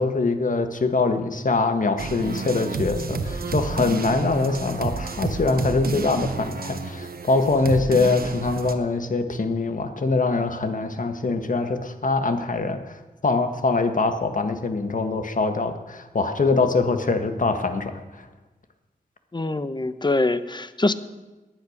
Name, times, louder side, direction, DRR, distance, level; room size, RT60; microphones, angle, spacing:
voice 1, 0.0-13.0 13.2-18.0, left 3 dB, 60° left, 7 dB, 1.7 m, -23 dB
sound 1, 2.0-8.7, right 4 dB, 75° right, 1.2 m, -30 dB
voice 2, 19.3-20.9, left 2 dB, 30° left, 13 dB, 1.0 m, -24 dB
18.5 x 10.5 x 6.6 m, 1.1 s
wide cardioid pair, 65°, 15 cm